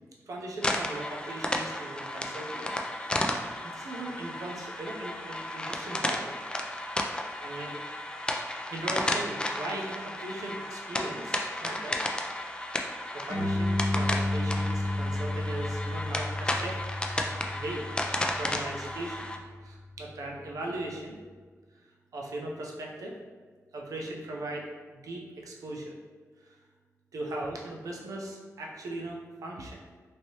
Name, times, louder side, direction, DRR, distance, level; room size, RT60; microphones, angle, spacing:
voice 1, 0.3-2.7 3.6-6.3 6.8-7.8 8.7-12.0 12.7-16.8 17.2-17.9 18.4-19.3 19.6-21.2 21.8-23.1 23.7-26.0 26.4-26.6 27.1-29.8, right 1 dB, 85° right, -1 dB, 0.5 m, -39 dB
sound 1, 0.6-19.4, left 1 dB, 15° left, 0.3 m, -33 dB
sound 2, 13.3-20.1, left 1 dB, 65° left, 0.8 m, -32 dB
3.1 x 2.7 x 2.8 m, 1.5 s
cardioid pair, 75°, 6 cm